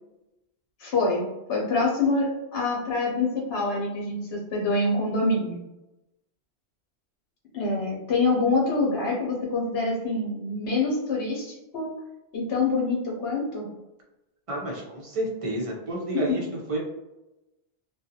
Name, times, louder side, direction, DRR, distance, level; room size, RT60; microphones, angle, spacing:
voice 1, 0.8-5.6 7.5-11.9 12.3-13.7, left 3 dB, 70° left, -3 dB, 0.9 m, -26 dB
voice 2, 14.5-16.8, right 1 dB, 35° right, -3 dB, 0.6 m, -30 dB
2.4 x 2.2 x 2.7 m, 0.96 s
omnidirectional pair, 1.1 m